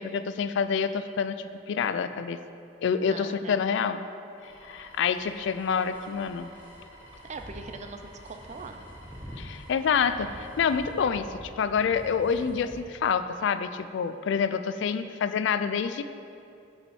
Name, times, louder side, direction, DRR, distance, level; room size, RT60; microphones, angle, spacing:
voice 1, 0.0-1.4 1.7-2.4 2.8-4.1 4.6-6.5 9.4-16.0, left 6 dB, 65° left, 11 dB, 0.3 m, -27 dB
voice 2, 3.1-3.6 7.2-8.9 14.7-15.2, right 4 dB, 35° right, 6 dB, 0.5 m, -42 dB
sound 1, 4.4-10.7, right 1 dB, 90° left, 2.1 m, -51 dB
sound 2, 4.9-12.8, equal, 5° right, 0.9 m, -47 dB
6.4 x 5.2 x 6.9 m, 2.6 s
head